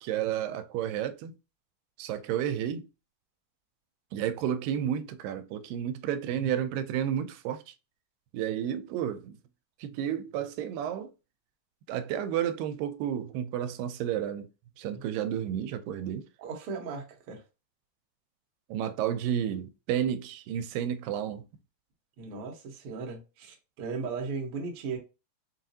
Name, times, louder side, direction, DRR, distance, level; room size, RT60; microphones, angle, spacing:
voice 1, 0.0-1.3 2.0-2.9 4.1-7.7 8.3-9.4 9.8-11.1 11.9-14.5 14.8-16.3 18.7-21.5, right 10 dB, 85° right, 2.2 m, -31 dB
voice 2, 16.4-17.4 22.2-25.0, right 4 dB, 70° right, 1.3 m, -37 dB
5.6 x 2.5 x 2.7 m
omnidirectional pair, 3.9 m